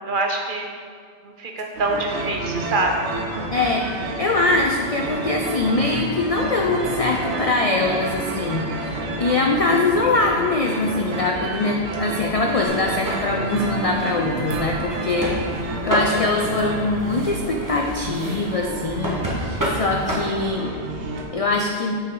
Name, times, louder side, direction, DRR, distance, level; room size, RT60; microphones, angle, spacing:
voice 1, 0.1-0.6 1.2-2.9, right 2 dB, 55° right, 2 dB, 0.8 m, -24 dB
sound 1, 1.8-21.2, right 2 dB, 75° right, 1.0 m, -30 dB
voice 2, 3.5-3.9 4.2-20.7 21.3-22.0, left 3 dB, 55° left, 1 dB, 0.4 m, -23 dB
sound 2, 12.6-20.5, equal, 15° right, 1.2 m, -30 dB
6.3 x 5.7 x 3.8 m, 2.1 s
omnidirectional pair, 1.2 m